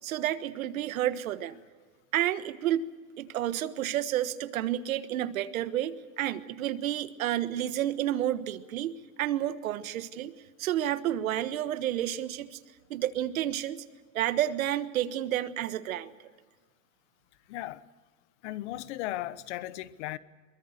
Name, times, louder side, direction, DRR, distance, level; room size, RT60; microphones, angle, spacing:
voice 1, 0.0-1.6 2.1-2.9 3.2-8.9 9.2-10.3 10.6-12.6 12.9-13.8 14.1-16.1, right 12 dB, 85° right, 12 dB, 1.5 m, -30 dB
voice 2, 17.5-17.8 18.4-20.2, left 15 dB, 55° left, 16 dB, 1.1 m, -36 dB
23.0 x 22.0 x 6.7 m, 1.4 s
supercardioid pair, 145°, 40 cm